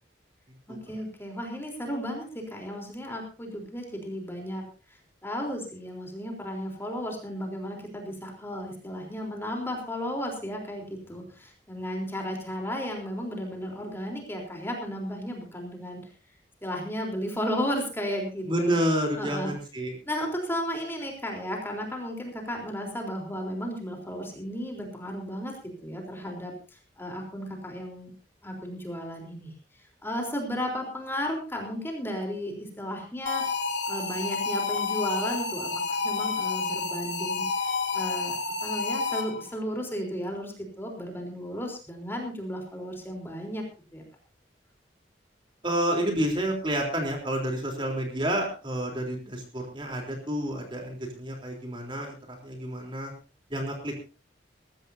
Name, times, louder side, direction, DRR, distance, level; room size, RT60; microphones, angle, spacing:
voice 1, 0.7-16.1 16.6-18.7 19.2-19.5 20.1-28.1 28.4-29.5 30.0-33.4 33.9-37.7 37.9-43.6 43.9-44.0, equal, 15° left, 1 dB, 3.8 m, -34 dB
voice 2, 18.4-19.9 45.6-53.1 53.5-54.0, equal, 30° right, 2 dB, 3.7 m, -29 dB
sound 1, 33.3-39.5, left 4 dB, 80° left, 2.3 m, -30 dB
21.5 x 15.0 x 2.8 m, 0.33 s
head